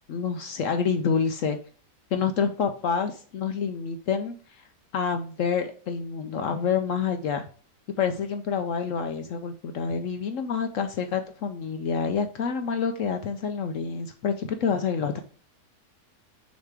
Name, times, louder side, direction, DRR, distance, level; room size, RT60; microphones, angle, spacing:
voice 1, 0.1-1.6 2.1-4.6 4.9-7.4 8.0-15.2, left 6 dB, 65° left, 7 dB, 0.8 m, -28 dB
6.5 x 3.4 x 4.8 m, 0.42 s
omnidirectional pair, 1.8 m